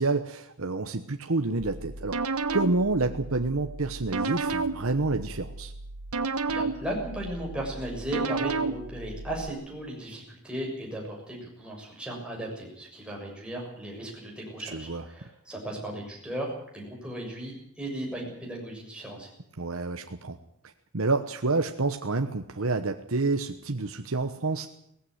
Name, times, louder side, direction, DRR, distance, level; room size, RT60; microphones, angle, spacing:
voice 1, 0.0-2.2 2.5-5.7 14.6-15.1 19.6-20.4 20.9-24.7, right 3 dB, 65° right, 6 dB, 1.1 m, -28 dB
sound 1, 1.6-9.5, right 3 dB, 85° right, 1.4 m, -32 dB
voice 2, 6.5-19.3, right 1 dB, 5° right, -2 dB, 6.9 m, -36 dB
18.5 x 15.5 x 9.6 m, 0.74 s
head